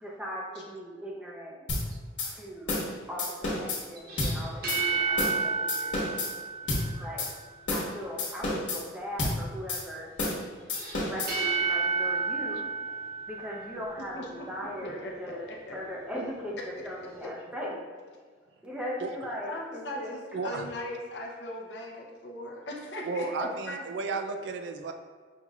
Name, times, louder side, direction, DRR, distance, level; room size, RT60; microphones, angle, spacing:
voice 1, 0.0-1.5 2.2-2.8 3.1-6.2 6.9-7.3 7.7-10.1 11.1-12.7 13.3-17.8 18.6-20.2 23.4-23.5, equal, 5° right, -3 dB, 0.6 m, -39 dB
sound 1, 1.7-1.8 2.2-2.3 2.7-2.9 3.2-3.8 4.2-4.3 4.7-4.8 5.2-5.4 5.7-6.3 6.7-6.8 7.2-7.3 7.7-7.9 8.2-8.8 9.2-9.4 9.7-9.8 10.2-10.4 10.7-11.3, left 2 dB, 85° left, 1.2 m, -30 dB
sound 2, 4.0-7.5 10.7-14.3, right 4 dB, 55° right, 0.9 m, -31 dB
voice 2, 14.1-14.5 14.8-15.1 15.5-15.8 17.2-17.3 19.5-23.8, left 1 dB, 65° left, -1 dB, 0.7 m, -39 dB
voice 3, 20.3-20.7 23.0-24.9, right 4 dB, 75° right, 6 dB, 0.4 m, -33 dB
5.5 x 3.0 x 2.4 m, 1.5 s
head